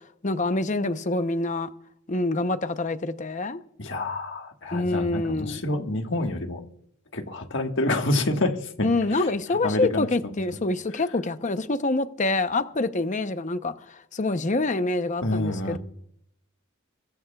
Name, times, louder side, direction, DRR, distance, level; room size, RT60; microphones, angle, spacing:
voice 1, 0.2-1.7 2.1-3.6 4.7-5.6 8.8-15.8, left 2 dB, 35° left, 0.8 m, -26 dB
voice 2, 3.8-6.6 7.1-8.9 9.1-9.3 9.6-10.1 15.2-15.8, left 2 dB, 60° left, 1.6 m, -27 dB
22.0 x 13.5 x 2.4 m
head